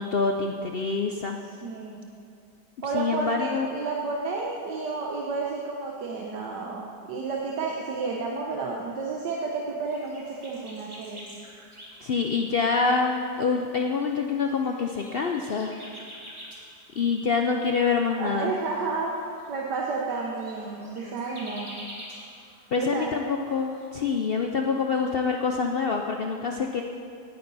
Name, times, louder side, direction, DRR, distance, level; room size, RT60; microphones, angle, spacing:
voice 1, 0.0-1.4 2.8-3.7 12.0-15.7 17.0-18.5 22.7-26.8, left 5 dB, 70° left, 3 dB, 0.5 m, -26 dB
voice 2, 1.6-2.1 2.8-11.2 18.2-19.1 19.5-21.7 22.8-23.1, right 4 dB, 80° right, -2 dB, 1.7 m, -31 dB
sound 1, 9.8-23.9, equal, 20° right, 1.7 m, -48 dB
18.0 x 9.0 x 4.1 m, 2.4 s
omnidirectional pair, 1.8 m